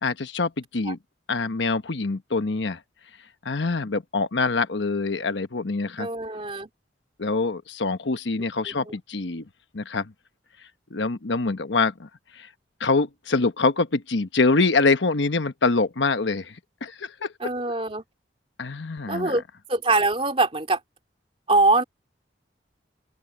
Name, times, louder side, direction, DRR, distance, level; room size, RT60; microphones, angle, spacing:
voice 1, 0.0-1.0 1.3-2.8 3.4-6.1 7.2-9.4 9.7-10.1 10.9-12.1 12.8-16.5 16.8-17.3 18.6-19.3, left 3 dB, 80° left, 1.1 m, -24 dB
voice 2, 6.0-6.7 8.1-8.2 8.7-8.9 17.4-18.0 19.1-19.4 19.7-20.8 21.5-21.8, right 2 dB, 30° right, 3.0 m, -23 dB
open air
head